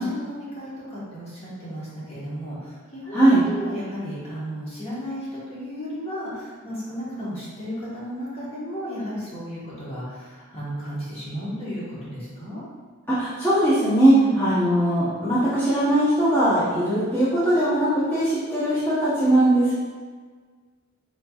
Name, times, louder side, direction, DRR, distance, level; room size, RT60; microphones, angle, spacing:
voice 1, 0.0-2.6 2.9-12.6 14.2-14.3, equal, 30° left, -8 dB, 1.1 m, -34 dB
voice 2, 3.1-3.4 13.1-19.7, right 1 dB, 10° left, -13 dB, 0.9 m, -20 dB
3.9 x 3.2 x 2.3 m, 1.5 s
head